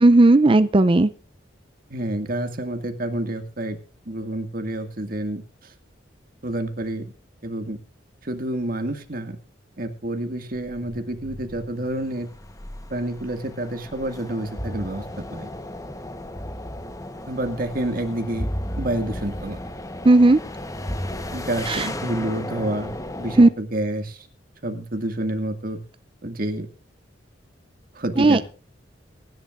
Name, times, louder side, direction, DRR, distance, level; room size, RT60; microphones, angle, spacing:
voice 1, 0.0-1.1 20.0-20.4 21.7-21.9 23.4-23.5 28.2-28.4, right 2 dB, 30° right, 0.5 m, -14 dB
voice 2, 1.9-3.8 4.1-5.7 6.4-7.1 7.4-7.8 8.2-9.4 9.8-12.3 12.9-15.5 17.3-18.5 18.8-19.6 21.3-24.3 24.6-25.8 26.2-26.7 27.9-28.4, right 1 dB, 50° right, 2.2 m, -28 dB
sound 1, 10.7-23.5, left 1 dB, 20° left, 1.2 m, -34 dB
23.0 x 11.0 x 2.6 m
head